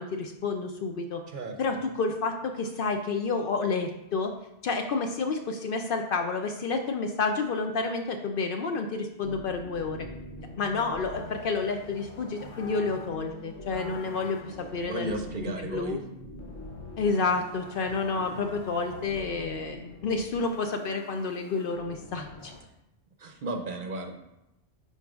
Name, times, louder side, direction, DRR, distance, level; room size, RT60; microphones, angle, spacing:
voice 1, 0.0-1.2 1.6-4.3 4.6-10.0 10.6-15.2 15.4-16.0 17.0-22.5, left 4 dB, 60° left, 4 dB, 0.6 m, -30 dB
sound 1, 9.2-22.6, left 2 dB, 80° left, 1.1 m, -44 dB
voice 2, 14.5-16.0 23.2-24.2, right 2 dB, 55° right, 5 dB, 0.7 m, -35 dB
10.0 x 4.0 x 2.4 m, 0.88 s
omnidirectional pair, 1.1 m